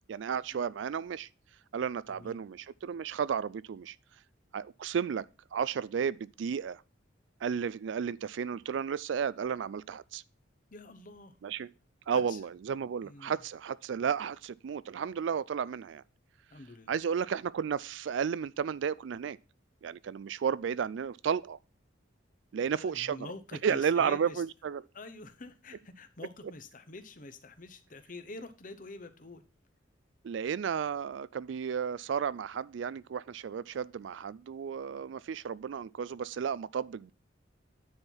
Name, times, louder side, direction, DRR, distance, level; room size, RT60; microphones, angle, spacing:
voice 1, 0.1-1.3 1.7-4.0 4.5-5.2 5.5-6.8 7.4-10.2 11.4-11.7 12.1-16.0 16.9-19.4 19.8-21.6 22.5-23.3 23.6-24.8 30.2-37.1, right 7 dB, 75° right, 0.3 m, -33 dB
voice 2, 2.1-2.4 10.7-11.4 12.1-12.4 13.0-13.4 16.5-17.0 22.6-24.4 24.9-29.4, left 2 dB, 45° left, 0.9 m, -47 dB
9.6 x 4.6 x 5.5 m
head